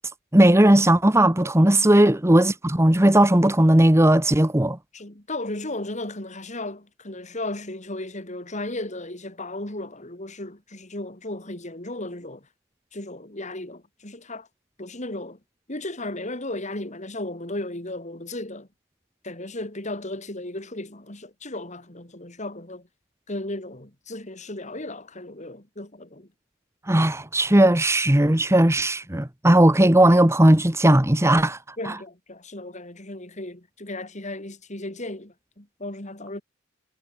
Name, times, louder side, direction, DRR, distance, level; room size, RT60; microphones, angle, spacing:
voice 1, 0.3-4.8 26.9-31.6 31.9-32.0, right 1 dB, 15° right, 1.3 m, -17 dB
voice 2, 4.9-12.5 12.9-14.5 14.8-15.4 15.7-18.7 19.2-22.9 23.3-26.3 31.8-36.4, left 2 dB, 35° left, 3.3 m, -35 dB
head